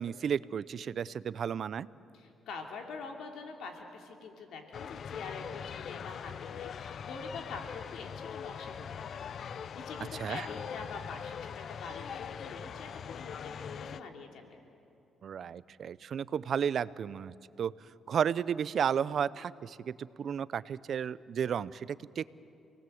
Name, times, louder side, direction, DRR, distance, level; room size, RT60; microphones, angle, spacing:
voice 1, 0.0-1.9 10.1-10.5 15.2-17.7 18.1-22.2, right 8 dB, 60° right, 18 dB, 0.6 m, -33 dB
voice 2, 2.1-14.6, left 4 dB, 75° left, 3 dB, 2.8 m, -45 dB
sound 1, 4.7-14.0, left 7 dB, 60° left, 0.5 m, -42 dB
29.0 x 19.0 x 7.9 m, 2.7 s
cardioid pair, 90°, 0 cm